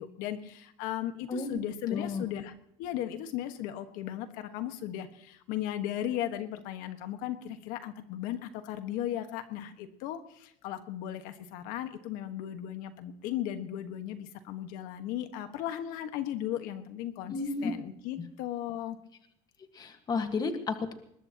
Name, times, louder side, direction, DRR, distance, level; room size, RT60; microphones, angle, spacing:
voice 1, 0.0-2.5 2.8-17.3 17.6-19.0, left 11 dB, 80° left, 8 dB, 1.5 m, -36 dB
voice 2, 1.9-2.2 17.3-17.7 18.2-18.3 19.7-20.9, left 4 dB, 30° left, 7 dB, 1.6 m, -32 dB
21.0 x 21.0 x 3.0 m, 0.75 s
cardioid pair, 145°, 14 cm